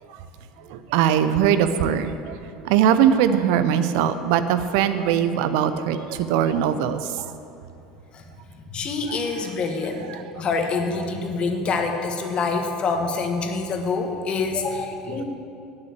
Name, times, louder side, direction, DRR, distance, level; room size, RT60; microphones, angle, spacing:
voice 1, 0.7-2.4 2.6-7.2 9.1-9.2 10.1-10.2, right 9 dB, 65° right, 11 dB, 0.6 m, -21 dB
voice 2, 8.7-15.2, left 4 dB, 40° left, 4 dB, 1.4 m, -26 dB
8.9 x 7.8 x 8.3 m, 2.7 s
hypercardioid pair, 75°, 3 cm